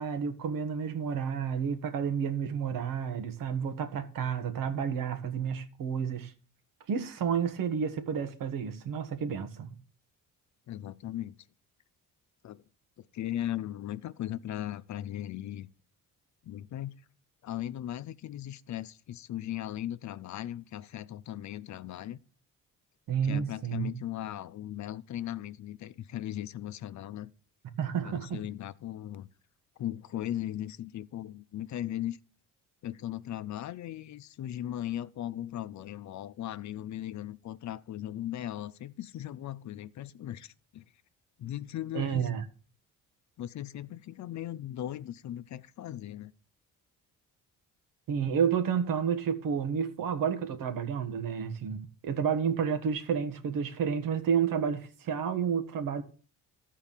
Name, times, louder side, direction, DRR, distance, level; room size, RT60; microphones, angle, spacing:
voice 1, 0.0-6.3 6.9-9.8 23.1-23.9 27.8-28.4 41.9-42.4 48.1-56.0, right 7 dB, 75° right, 1.4 m, -30 dB
voice 2, 10.7-11.4 12.4-12.6 13.1-15.7 16.4-16.9 17.4-22.2 23.2-27.3 28.0-29.3 29.8-32.2 32.8-40.8 41.4-42.3 43.4-46.3, left 12 dB, 55° left, 0.6 m, -38 dB
13.0 x 4.6 x 7.3 m
cardioid pair, 115°, 34 cm